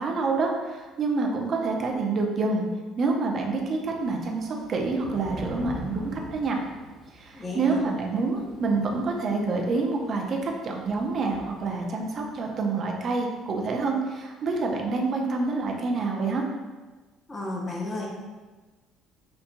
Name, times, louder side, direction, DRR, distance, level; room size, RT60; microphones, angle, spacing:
voice 1, 0.0-2.6 3.0-6.6 7.1-16.4, right 3 dB, 45° right, 1 dB, 0.6 m, -27 dB
Thunder / Rain, 4.0-12.4, equal, ahead, 1.0 m, -43 dB
voice 2, 7.3-7.8 17.3-18.1, left 2 dB, 30° left, -2 dB, 0.8 m, -32 dB
5.8 x 2.6 x 2.2 m, 1.3 s
hypercardioid pair, 55°, 0 cm